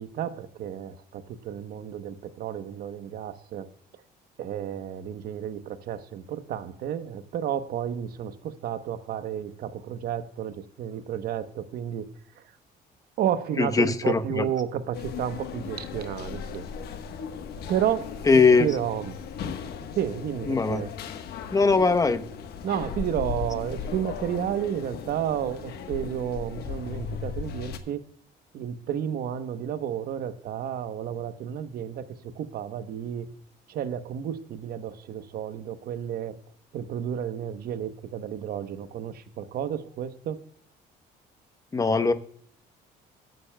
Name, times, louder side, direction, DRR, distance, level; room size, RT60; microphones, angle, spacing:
voice 1, 0.0-3.7 4.4-12.1 12.4-12.5 13.2-16.7 17.7-19.2 19.9-20.9 22.6-28.0 28.5-33.3 33.7-36.4 36.7-40.4, right 9 dB, 65° right, 11 dB, 1.0 m, -31 dB
voice 2, 13.6-14.4 18.3-18.7 20.5-20.8 21.5-22.2 41.7-42.1, left 4 dB, 20° left, 9 dB, 0.9 m, -20 dB
sound 1, 14.9-27.8, left 6 dB, 70° left, 1.2 m, -37 dB
21.5 x 9.5 x 2.2 m, 0.62 s
cardioid pair, 110°, 17 cm